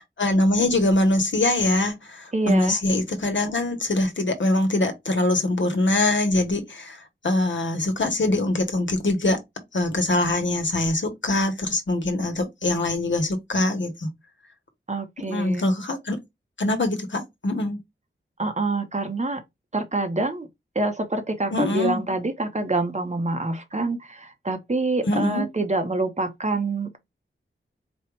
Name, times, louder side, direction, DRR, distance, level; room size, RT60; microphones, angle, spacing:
voice 1, 0.2-9.4 9.7-14.1 15.3-16.2 16.6-17.8 21.5-22.0 25.0-25.5, left 2 dB, 65° left, 1.1 m, -23 dB
voice 2, 2.3-2.8 14.9-15.6 18.4-19.4 19.7-20.5 20.7-27.0, right 2 dB, 35° right, 0.9 m, -26 dB
4.3 x 2.4 x 3.1 m
wide cardioid pair, 80°, 21 cm